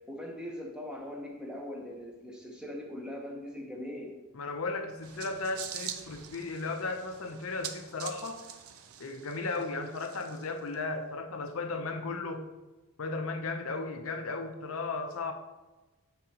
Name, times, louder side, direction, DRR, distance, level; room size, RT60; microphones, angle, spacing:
voice 1, 0.1-4.2, left 1 dB, 5° right, -1 dB, 0.9 m, -41 dB
voice 2, 4.3-8.5 9.0-12.5 13.0-15.3, left 3 dB, 70° left, 6 dB, 0.6 m, -35 dB
sound 1, 5.0-10.7, right 9 dB, 75° right, 0.5 m, -44 dB
9.9 x 4.3 x 2.9 m, 1.1 s
head